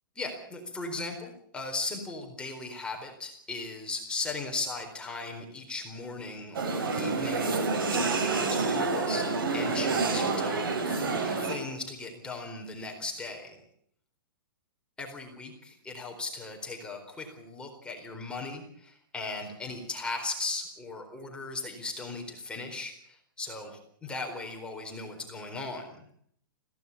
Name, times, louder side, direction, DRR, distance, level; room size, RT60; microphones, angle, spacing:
voice 1, 0.2-9.2 9.5-13.6 15.0-26.1, left 3 dB, 10° left, 2 dB, 4.3 m, -38 dB
sound 1, 6.5-11.5, right 4 dB, 80° right, 7.1 m, -28 dB
21.5 x 17.0 x 8.6 m, 0.66 s
hypercardioid pair, 145°, 12 cm